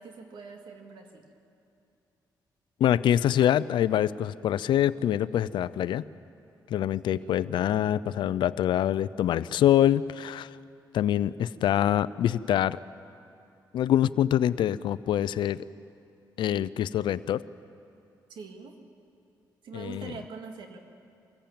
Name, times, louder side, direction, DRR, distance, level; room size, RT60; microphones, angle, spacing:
voice 1, 0.0-1.3 7.1-7.6 18.3-18.8 19.6-20.8, right 5 dB, 80° right, 4 dB, 2.2 m, -44 dB
voice 2, 2.8-6.0 6.7-10.5 10.9-12.8 13.7-15.6 16.4-17.4 19.7-20.1, left 11 dB, 80° left, 16 dB, 0.5 m, -25 dB
23.5 x 15.0 x 8.7 m, 2.6 s
cardioid pair, 75°, 8 cm